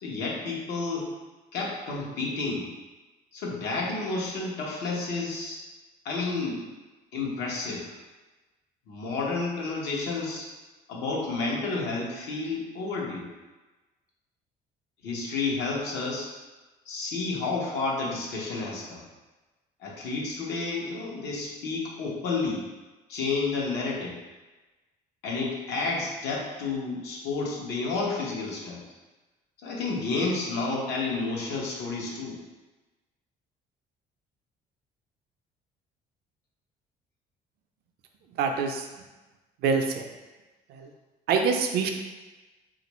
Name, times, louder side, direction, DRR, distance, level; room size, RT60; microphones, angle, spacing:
voice 1, 0.0-1.1 1.5-2.7 3.3-5.6 6.0-6.6 7.1-7.9 8.9-10.5 10.9-13.3 15.0-16.3 16.9-19.0 19.8-22.6 23.1-24.2 25.2-28.8 29.6-32.4, left 3 dB, 90° left, -3 dB, 0.8 m, -30 dB
voice 2, 38.4-38.9 39.6-40.1 40.7-40.9 41.3-41.9, right 5 dB, 70° right, 4 dB, 0.5 m, -25 dB
3.4 x 2.5 x 3.0 m, 1.2 s
cardioid pair, 110°, 17 cm